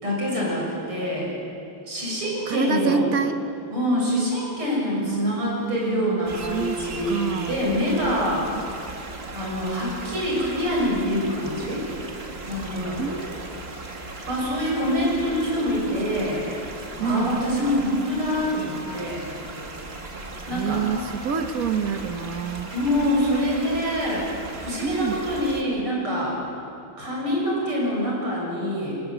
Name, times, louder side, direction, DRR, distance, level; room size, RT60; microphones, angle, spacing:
voice 1, 0.0-1.3 1.8-3.1 3.7-8.5 9.3-11.8 12.5-13.1 14.3-16.7 17.0-19.3 20.4-20.9 22.7-24.3 24.6-26.4 27.0-28.9, equal, 85° right, -3 dB, 8.0 m, -25 dB
voice 2, 2.5-3.4 5.0-7.7 13.0-13.5 17.0-17.4 20.5-22.7 24.8-25.2, right 6 dB, 50° right, 7 dB, 1.2 m, -27 dB
sound 1, 6.2-25.6, right 2 dB, 30° right, 1.9 m, -37 dB
25.5 x 19.5 x 8.2 m, 2.7 s
omnidirectional pair, 2.3 m